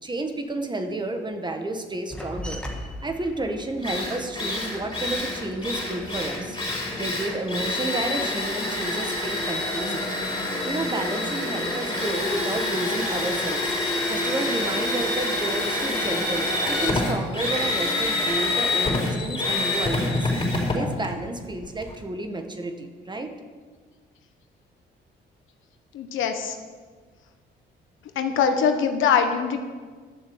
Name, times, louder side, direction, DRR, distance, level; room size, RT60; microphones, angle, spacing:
voice 1, 0.0-2.6 3.0-6.6 6.9-10.1 10.6-13.7 14.1-20.3 20.7-23.3, right 2 dB, 20° right, 5 dB, 1.5 m, -31 dB
sound 1, 2.1-7.1 7.4-8.7 9.0-9.9 10.2-11.6 12.0-12.6, equal, 5° left, 1.8 m, -41 dB
Drill, 3.4-3.5 3.8-22.0, left 2 dB, 25° left, 4.3 m, -27 dB
voice 2, 25.9-26.6 28.1-29.6, left 7 dB, 80° left, 6 dB, 1.3 m, -22 dB
11.5 x 7.1 x 8.0 m, 1.5 s
cardioid pair, 90°, 20 cm